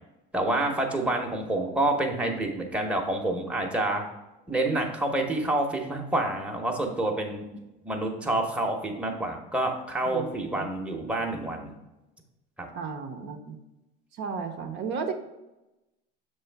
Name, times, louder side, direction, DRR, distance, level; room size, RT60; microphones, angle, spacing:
voice 1, 0.3-4.0 4.5-7.4 7.8-11.7 12.6-12.7, right 2 dB, 5° right, 1 dB, 0.8 m, -28 dB
voice 2, 10.1-10.7 12.7-13.6 14.2-15.1, right 5 dB, 60° right, 5 dB, 0.7 m, -34 dB
6.8 x 3.1 x 4.5 m, 0.98 s
cardioid pair, 130°, 20 cm